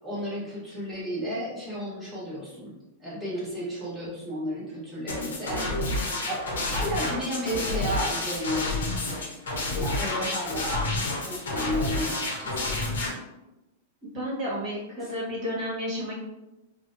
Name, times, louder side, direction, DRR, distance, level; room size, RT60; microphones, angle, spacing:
voice 1, 0.0-2.7 3.0-5.9 6.3-8.9 9.7-12.8 15.0-15.1, equal, 5° right, -10 dB, 1.2 m, -33 dB
sound 1, 5.1-13.1, left 2 dB, 85° left, 0.7 m, -29 dB
voice 2, 14.0-16.2, equal, 45° right, -6 dB, 1.1 m, -32 dB
2.5 x 2.1 x 2.5 m, 0.98 s
hypercardioid pair, 120°, 0 cm